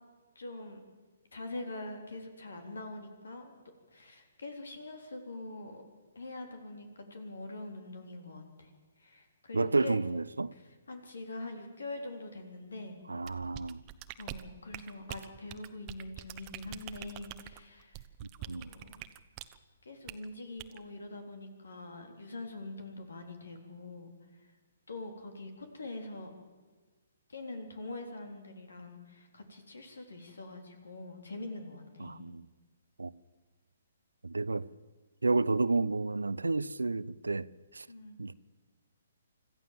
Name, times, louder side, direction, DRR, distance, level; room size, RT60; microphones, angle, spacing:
voice 1, 0.4-0.8 1.3-3.6 3.9-5.8 6.2-8.7 9.0-10.0 10.5-10.6 10.9-13.0 14.2-18.0 18.4-19.0 19.8-24.5 24.9-26.3 27.3-32.2 37.9-38.2, left 2 dB, 80° left, 3.8 m, -44 dB
voice 2, 9.5-10.5 13.1-13.8 18.5-18.7 32.0-32.4 33.0-33.1 34.2-34.7 35.2-37.5 37.7-37.9 38.2-38.3, right 3 dB, 90° right, 0.6 m, -30 dB
sound 1, 13.2-19.6 20.1-20.3 20.6-20.8, right 15 dB, 30° right, 1.0 m, -45 dB
25.5 x 14.0 x 7.5 m
figure-of-eight pair, 135°, 0 cm